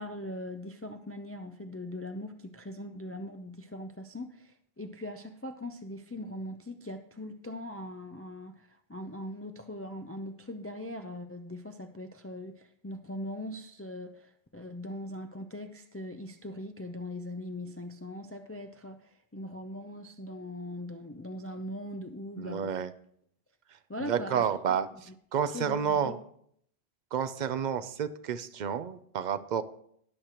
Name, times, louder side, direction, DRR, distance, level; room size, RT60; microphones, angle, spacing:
voice 1, 0.0-22.7 23.9-24.5 25.1-25.2 25.5-26.1, left 1 dB, 20° left, 6 dB, 0.4 m, -41 dB
voice 2, 22.4-22.9 24.0-26.2 27.1-29.6, right 7 dB, 55° right, 13 dB, 0.6 m, -30 dB
18.5 x 6.6 x 3.0 m, 0.68 s
omnidirectional pair, 1.0 m